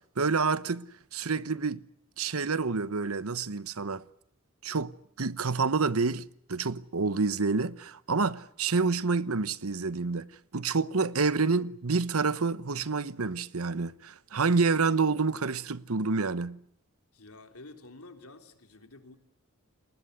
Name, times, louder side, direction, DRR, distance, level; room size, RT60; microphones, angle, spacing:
voice 1, 0.2-1.8 2.2-4.0 4.6-10.3 10.5-16.6, right 4 dB, 75° right, 1.0 m, -28 dB
voice 2, 17.1-19.2, left 2 dB, 80° left, 3.5 m, -50 dB
29.5 x 20.5 x 8.1 m
head